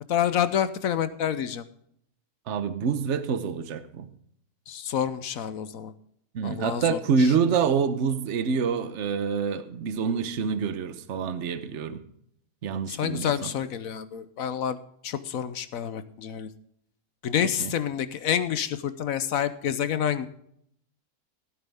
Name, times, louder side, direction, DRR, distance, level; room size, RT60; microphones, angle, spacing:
voice 1, 0.1-1.6 4.7-5.9 6.4-7.3 12.9-14.8 15.0-16.5 17.2-20.3, left 9 dB, 70° left, 13 dB, 1.1 m, -28 dB
voice 2, 2.5-4.1 6.3-12.0 12.6-13.5 17.6-17.7, right 6 dB, 55° right, 11 dB, 1.1 m, -26 dB
15.5 x 9.1 x 3.5 m, 0.70 s
omnidirectional pair, 1.6 m